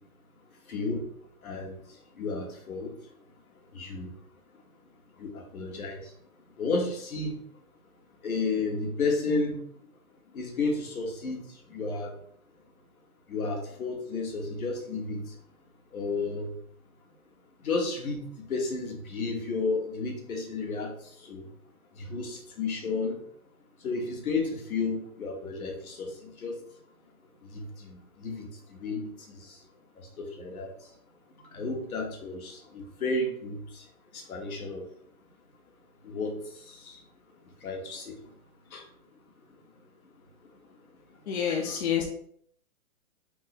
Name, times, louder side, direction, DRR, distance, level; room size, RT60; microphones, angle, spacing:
voice 1, 0.7-1.0 1.4-1.8 2.2-2.9 3.7-4.1 5.2-6.0 6.6-7.4 8.2-9.6 10.3-11.4 11.7-12.1 13.3-15.2 15.9-16.5 17.6-20.9 21.2-21.5 22.0-23.2 23.8-26.6 27.5-29.0 29.3-29.6 30.2-30.7 31.5-33.8 34.1-34.9 36.0-36.3 36.7-37.0 37.6-38.1 38.7-38.8, left 3 dB, 80° left, 1 dB, 1.2 m, -32 dB
voice 2, 41.3-42.0, left 8 dB, 50° left, 1 dB, 0.6 m, -28 dB
3.6 x 2.0 x 4.0 m, 0.65 s
hypercardioid pair, 155°, 43 cm